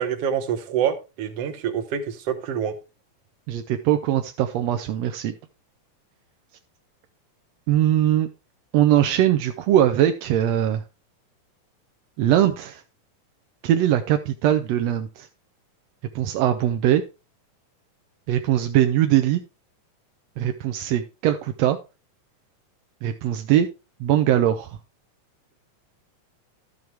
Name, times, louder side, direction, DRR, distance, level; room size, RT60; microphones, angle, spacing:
voice 1, 0.0-2.7, right 8 dB, 60° right, 7 dB, 1.8 m, -26 dB
voice 2, 3.5-5.3 7.7-8.3 8.7-10.8 12.2-12.8 13.6-15.3 16.1-17.0 18.3-19.4 20.4-21.8 23.0-23.7 24.0-24.8, right 11 dB, 80° right, 7 dB, 1.5 m, -21 dB
13.0 x 6.3 x 3.4 m, 0.29 s
omnidirectional pair, 3.7 m